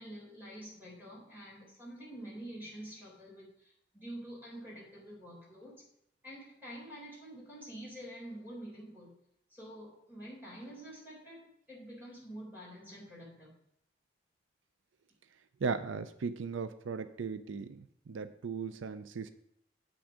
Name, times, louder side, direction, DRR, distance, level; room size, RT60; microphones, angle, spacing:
voice 1, 0.0-5.8 6.2-9.1 9.5-13.5, right 1 dB, 10° right, -5 dB, 4.0 m, -47 dB
voice 2, 15.6-19.3, right 5 dB, 90° right, 12 dB, 0.5 m, -37 dB
8.4 x 6.1 x 5.0 m, 0.73 s
head